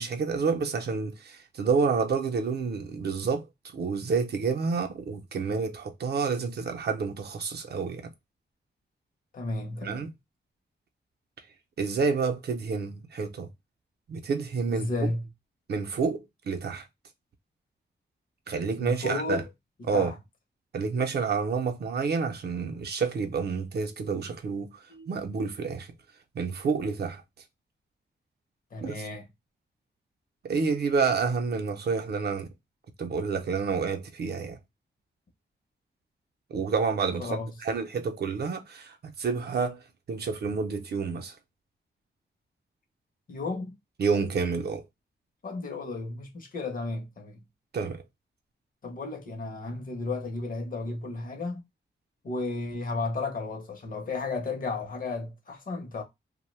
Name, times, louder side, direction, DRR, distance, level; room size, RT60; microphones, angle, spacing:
voice 1, 0.0-3.5 3.7-8.1 9.8-10.1 11.8-13.5 14.1-15.1 15.7-16.8 18.5-19.4 19.8-20.1 20.7-25.9 26.3-27.2 28.8-29.0 30.4-32.5 33.0-34.6 36.5-39.8 40.1-41.3 44.0-44.8 47.7-48.0, right 5 dB, 60° right, 0.5 m, -29 dB
voice 2, 9.3-10.1 14.7-15.3 18.8-19.4 19.8-20.2 24.9-25.1 28.7-29.3 37.2-37.5 43.3-43.8 45.4-47.4 48.8-51.6 52.2-56.0, left 3 dB, 45° left, 0.7 m, -33 dB
2.6 x 2.1 x 3.0 m
wide cardioid pair, 175°, 19 cm